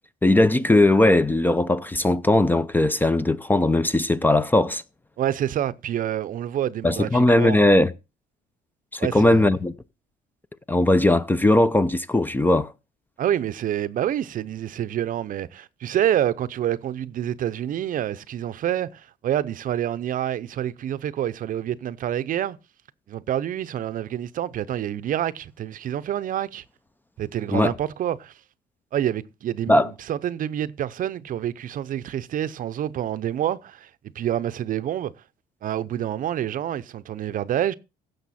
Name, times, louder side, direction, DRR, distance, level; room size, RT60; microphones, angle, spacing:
voice 1, 0.2-4.8 6.8-7.9 8.9-9.7 10.7-12.7 27.5-27.7 29.7-29.9, left 2 dB, 10° left, 0.5 m, -19 dB
voice 2, 5.2-7.6 9.0-9.5 13.2-22.6 23.1-26.6 27.2-28.3 28.9-33.9 34.1-35.1 35.6-37.7, right 11 dB, 55° right, 0.7 m, -27 dB
16.0 x 6.7 x 4.2 m
cardioid pair, 110°, 17 cm